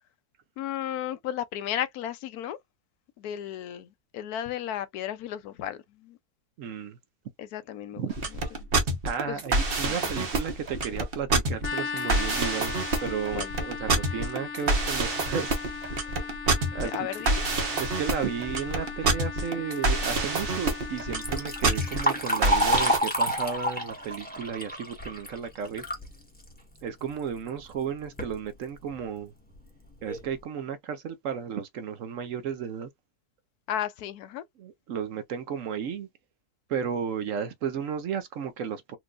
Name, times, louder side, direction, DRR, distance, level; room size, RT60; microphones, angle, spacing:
voice 1, 0.6-2.6 3.2-6.2 7.4-8.4 9.3-9.4 9.8-10.1 13.3-13.5 16.8-17.4 33.7-34.4, left 11 dB, 75° left, 1.1 m, -34 dB
voice 2, 6.6-7.0 8.0-8.1 9.0-15.6 15.9-16.2 16.7-16.9 17.8-25.8 26.8-29.3 30.0-32.9 34.6-36.1 36.7-39.0, right 7 dB, 65° right, 0.9 m, -33 dB
sound 1, 8.1-23.0, right 2 dB, 40° right, 1.0 m, -27 dB
sound 2, 11.6-22.2, left 6 dB, 50° left, 0.8 m, -38 dB
Liquid, 21.0-26.1 26.5-26.6 27.5-27.6 28.0-28.3 28.9-29.0 29.5-29.6 30.1-30.3, equal, 5° left, 1.2 m, -28 dB
4.4 x 2.6 x 2.3 m
omnidirectional pair, 1.6 m